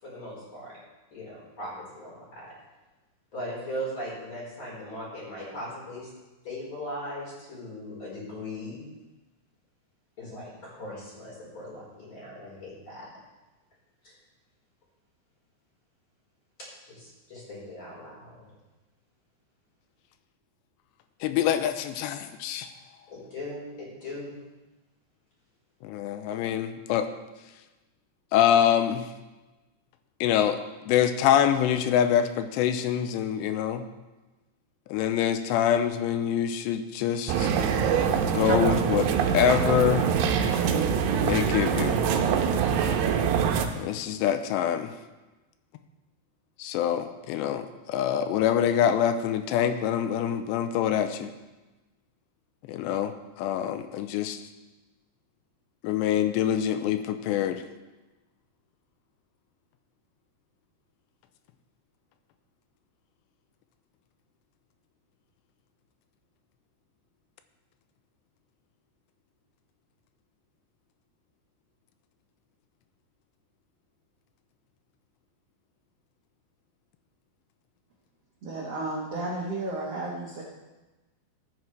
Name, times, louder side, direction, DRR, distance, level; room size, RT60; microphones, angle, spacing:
voice 1, 0.0-0.8 1.1-2.6 3.3-6.1 6.4-8.8 10.2-13.1 14.0-14.1 16.6-18.4 23.1-24.3, equal, 30° left, -5 dB, 4.7 m, -39 dB
voice 2, 21.2-22.7 25.8-27.1 28.3-29.0 30.2-30.6 30.9-33.8 34.9-37.5 38.2-40.1 41.2-42.0 43.7-44.9 46.6-51.3 52.7-53.1 53.4-54.4 55.8-57.6, left 9 dB, 90° left, 9 dB, 2.8 m, -25 dB
sound 1, 37.3-43.7, right 7 dB, 80° right, 2.9 m, -24 dB
voice 3, 78.4-80.4, right 2 dB, 65° right, -4 dB, 1.6 m, -33 dB
15.5 x 9.5 x 3.2 m, 1.1 s
omnidirectional pair, 4.9 m